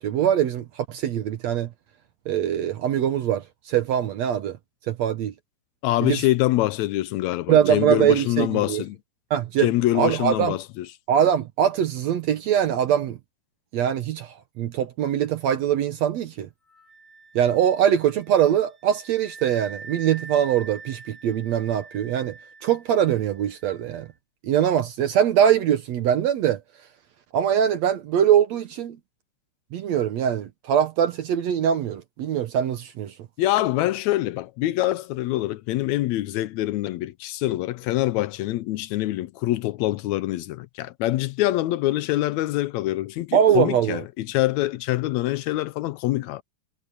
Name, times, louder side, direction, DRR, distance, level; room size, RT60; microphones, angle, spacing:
voice 1, 0.0-1.7 2.3-4.6 4.9-5.3 6.0-6.2 7.5-8.8 9.3-9.7 10.0-10.6 11.1-13.2 13.7-16.5 17.4-22.4 22.6-24.1 24.4-26.6 27.3-29.0 29.7-33.1 43.3-44.0, right 9 dB, 70° right, 2.1 m, -22 dB
voice 2, 5.8-9.0 9.6-10.9 33.4-46.4, left 16 dB, 80° left, 1.8 m, -25 dB
Wind instrument woodwind instrument, 16.7-24.1, right 4 dB, 40° right, 4.5 m, -45 dB
omnidirectional pair, 3.5 m